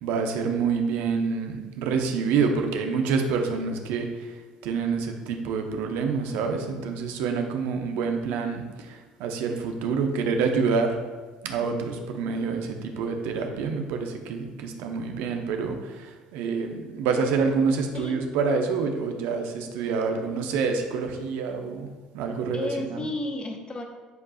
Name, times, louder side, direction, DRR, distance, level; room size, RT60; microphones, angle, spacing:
voice 1, 0.0-4.3 4.6-11.0 11.4-21.9 22.1-23.0, right 5 dB, 65° right, 4 dB, 0.9 m, -27 dB
voice 2, 22.5-23.8, left 2 dB, 30° left, 4 dB, 1.0 m, -32 dB
10.5 x 4.7 x 2.4 m, 1.3 s
figure-of-eight pair, 60°, 3 cm